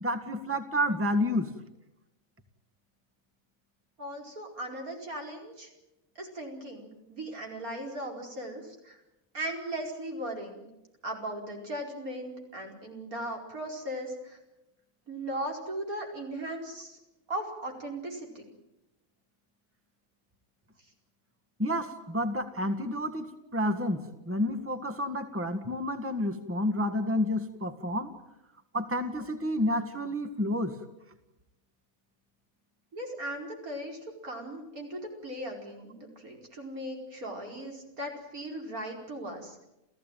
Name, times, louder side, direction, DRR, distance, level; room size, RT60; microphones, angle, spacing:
voice 1, 0.0-1.5 21.6-28.1 28.7-30.8, left 1 dB, 10° right, 8 dB, 1.7 m, -30 dB
voice 2, 4.0-5.7 6.2-9.0 9.3-10.6 11.0-14.4 15.1-17.0 17.3-18.4 32.9-39.6, right 1 dB, 80° right, 1 dB, 5.3 m, -38 dB
29.5 x 15.5 x 9.2 m, 0.95 s
omnidirectional pair, 1.5 m